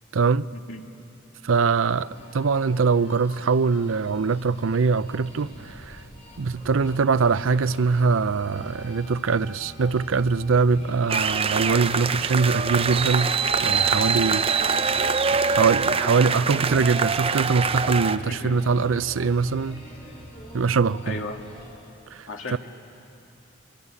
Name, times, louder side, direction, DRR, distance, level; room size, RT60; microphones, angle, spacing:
voice 1, 0.1-0.5 1.4-6.0 6.4-13.3 13.6-15.0 15.5-19.8 20.5-21.2 22.1-22.6, right 4 dB, 80° right, 0.5 m, -23 dB
sound 1, 1.8-21.7, left 1 dB, 35° left, 6.4 m, -46 dB
sound 2, 6.3-21.0, right 1 dB, 5° left, 5.2 m, -45 dB
sound 3, 11.1-18.2, right 5 dB, 30° right, 0.6 m, -24 dB
voice 2, 18.3-18.6 21.0-21.4 22.3-22.6, left 2 dB, 85° left, 2.2 m, -34 dB
25.5 x 24.0 x 9.7 m
head